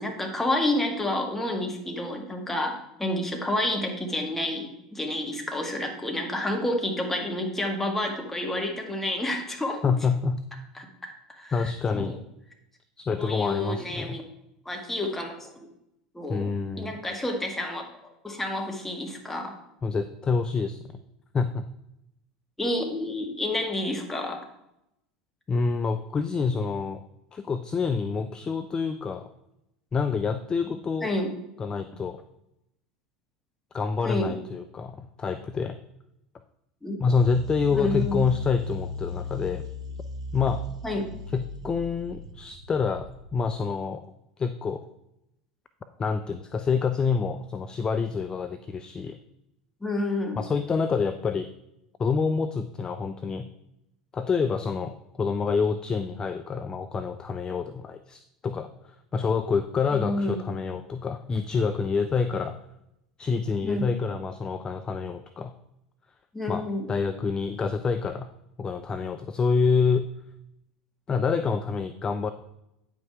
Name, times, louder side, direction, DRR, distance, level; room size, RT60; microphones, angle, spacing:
voice 1, 0.0-9.8 10.8-12.1 13.2-14.2 14.7-15.5 16.1-19.6 22.6-24.5 31.0-31.3 34.0-34.4 36.8-37.0 37.7-38.2 40.8-41.1 49.8-50.4 59.9-60.4 63.6-63.9 66.3-66.9, left 1 dB, 10° left, 2 dB, 1.9 m, -29 dB
voice 2, 9.8-10.4 11.5-12.2 13.0-14.2 16.3-17.0 19.8-21.0 21.3-21.7 25.5-27.0 27.3-29.3 29.9-31.1 31.6-32.2 33.7-35.8 37.0-39.6 40.3-40.6 41.3-44.0 44.4-44.8 46.0-49.2 50.3-51.5 52.0-53.5 54.1-62.6 63.2-65.5 66.5-68.3 68.6-70.1 71.1-72.3, left 5 dB, 25° left, 10 dB, 0.5 m, -27 dB
sound 1, 37.1-43.6, left 2 dB, 80° right, 1.3 m, -37 dB
9.2 x 5.5 x 4.6 m, 0.82 s
figure-of-eight pair, 75°, 3 cm